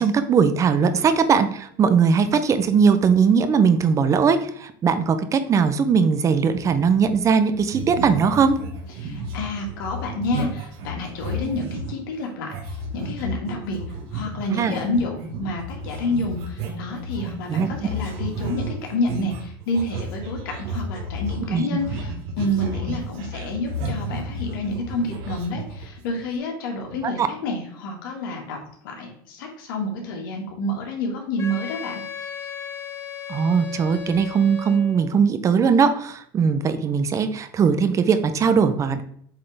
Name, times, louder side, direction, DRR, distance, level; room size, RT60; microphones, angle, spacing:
voice 1, 0.0-8.6 14.5-14.7 17.5-17.7 21.5-21.6 27.2-27.3 33.3-39.0, right 6 dB, 30° right, 11 dB, 0.6 m, -19 dB
sound 1, 6.5-7.3 7.5-12.0 12.5-26.2, right 1 dB, 65° right, 1.4 m, -32 dB
voice 2, 9.0-12.5 12.9-13.8 14.1-28.6 28.8-32.3, left 1 dB, 90° left, 1 dB, 1.8 m, -29 dB
Wind instrument woodwind instrument, 31.4-35.1, left 7 dB, 25° left, 0.8 m, -36 dB
7.9 x 3.7 x 3.4 m, 0.65 s
supercardioid pair, 130°, 11 cm